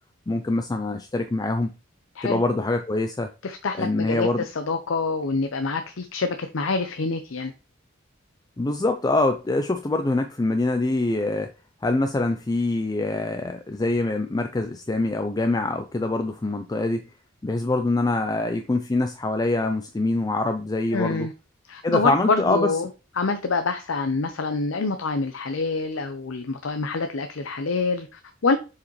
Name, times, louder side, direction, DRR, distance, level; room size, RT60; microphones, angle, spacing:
voice 1, 0.3-1.7 2.2-3.3 3.8-4.4 8.6-11.5 11.8-17.1 17.4-21.3 21.8-22.7, left 2 dB, 20° left, 0.4 m, -24 dB
voice 2, 3.4-7.5 20.9-21.3 21.7-22.9 23.2-28.6, left 4 dB, 80° left, 0.6 m, -26 dB
7.1 x 4.9 x 3.1 m
head